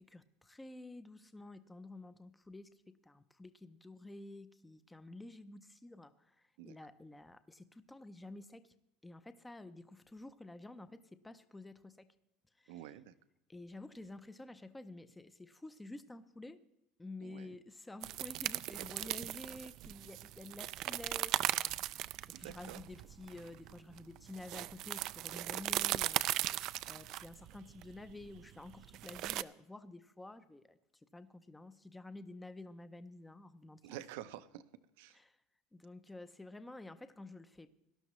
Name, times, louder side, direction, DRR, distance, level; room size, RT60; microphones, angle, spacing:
voice 1, 0.0-8.7 9.0-12.1 12.6-12.8 13.5-16.6 17.0-22.1 22.3-30.8 31.1-34.0 35.1-35.4 35.7-37.7, left 2 dB, 5° left, 12 dB, 0.5 m, -51 dB
voice 2, 12.7-13.1 17.2-17.6 22.3-22.8 26.9-27.0 33.8-34.6 35.0-35.2, right 13 dB, 75° right, 13 dB, 0.7 m, -49 dB
sound 1, 18.0-29.4, right 15 dB, 50° right, 0.3 m, -38 dB
18.0 x 12.0 x 3.1 m, 0.89 s
supercardioid pair, 150°, 0 cm